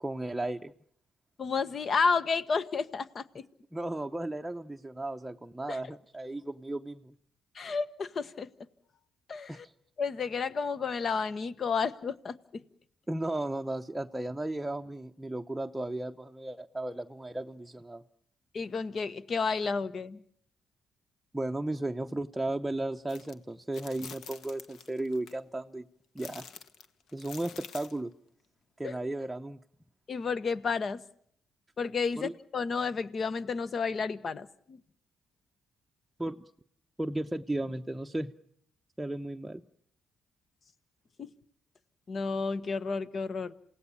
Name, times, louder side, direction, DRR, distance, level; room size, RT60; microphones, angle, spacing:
voice 1, 0.0-0.7 3.7-7.1 9.5-9.6 13.1-18.0 21.3-25.8 26.1-26.4 27.1-28.1 28.8-29.6 32.2-32.3 36.2-36.5 37.0-38.3 39.0-39.6, right 1 dB, 10° right, 3 dB, 0.8 m, -35 dB
voice 2, 1.4-3.4 5.7-5.8 7.5-8.5 9.3-9.6 10.0-12.6 18.5-20.2 28.8-29.0 30.1-31.0 31.8-34.8 41.2-41.3 42.1-43.5, left 5 dB, 45° left, 15 dB, 1.3 m, -31 dB
sound 1, 23.1-23.3 23.7-25.3 26.2-28.0, left 6 dB, 70° left, 1.7 m, -47 dB
28.0 x 17.5 x 7.2 m, 0.66 s
cardioid pair, 90°, 0 cm